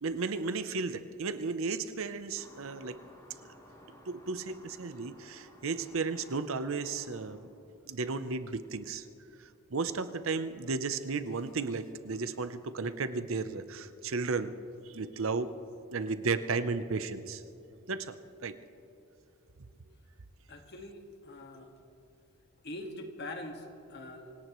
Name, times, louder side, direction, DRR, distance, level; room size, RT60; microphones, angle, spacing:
voice 1, 0.0-3.0 4.1-7.4 7.9-9.0 9.7-14.5 14.9-15.5 15.9-17.4 17.9-18.2 18.4-18.6, right 4 dB, 65° right, 11 dB, 0.7 m, -34 dB
sound 1, 2.4-7.3, equal, 15° left, 3.1 m, -56 dB
voice 2, 20.5-21.7 22.6-24.4, left 1 dB, 50° left, 4 dB, 1.7 m, -43 dB
26.0 x 18.0 x 3.1 m, 2.8 s
head